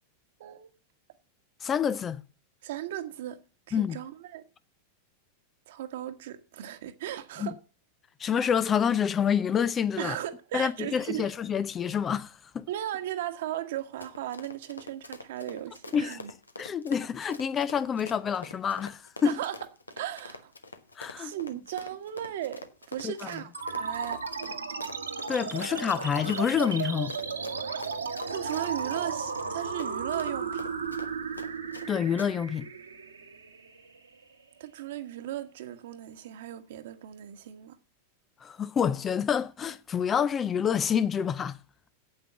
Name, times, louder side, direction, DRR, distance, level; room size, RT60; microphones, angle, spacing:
voice 1, 0.4-0.7 2.6-3.4 3.7-4.4 5.7-7.5 10.0-11.3 12.7-16.3 19.2-19.6 20.0-20.5 21.2-24.2 28.3-30.6 34.6-37.8, right 12 dB, 55° right, 1.4 m, -36 dB
voice 2, 1.6-2.2 3.7-4.0 7.4-7.5 8.2-10.2 10.5-12.7 15.9-16.2 16.6-19.4 21.0-21.3 23.0-23.3 25.3-27.1 31.9-32.7 38.4-41.6, left 7 dB, 25° left, 0.6 m, -27 dB
Run, 13.7-31.9 32.2-32.3, left 3 dB, 80° left, 1.1 m, -45 dB
sound 1, 23.5-34.5, right 5 dB, 75° right, 1.6 m, -35 dB
8.9 x 8.3 x 7.3 m
figure-of-eight pair, 90°, 0 cm